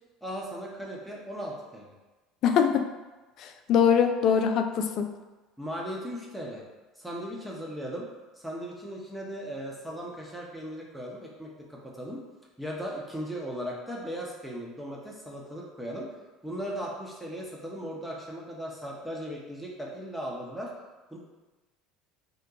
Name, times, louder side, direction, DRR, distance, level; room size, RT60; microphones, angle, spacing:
voice 1, 0.2-1.9 5.6-6.6 7.0-8.0 8.4-12.2 12.6-16.1 16.4-20.7 21.1-21.2, equal, ahead, -3 dB, 0.9 m, -37 dB
voice 2, 2.4-2.8 3.4-5.1, left 7 dB, 55° left, 6 dB, 0.3 m, -23 dB
2.8 x 2.2 x 3.7 m, 1.2 s
hypercardioid pair, 75°, 0 cm